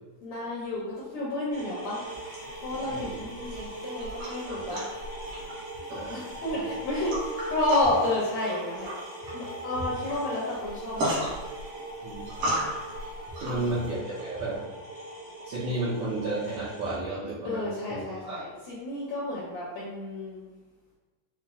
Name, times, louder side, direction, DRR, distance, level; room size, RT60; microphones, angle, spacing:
voice 1, 0.2-2.1 2.6-4.8 6.1-8.9 9.3-11.4 13.4-13.8 17.4-20.5, left 1 dB, 80° left, -7 dB, 1.6 m, -31 dB
sound 1, 1.5-17.0, right 1 dB, 40° right, 1.0 m, -40 dB
sound 2, 2.1-13.9, right 1 dB, 60° right, 1.5 m, -37 dB
voice 2, 2.7-3.2 4.5-4.8 5.9-6.2 6.5-6.6 12.0-12.3 13.4-14.6 15.4-17.6 17.9-18.4, right 2 dB, 75° right, -9 dB, 1.7 m, -33 dB
5.8 x 2.0 x 2.3 m, 1.2 s
omnidirectional pair, 3.8 m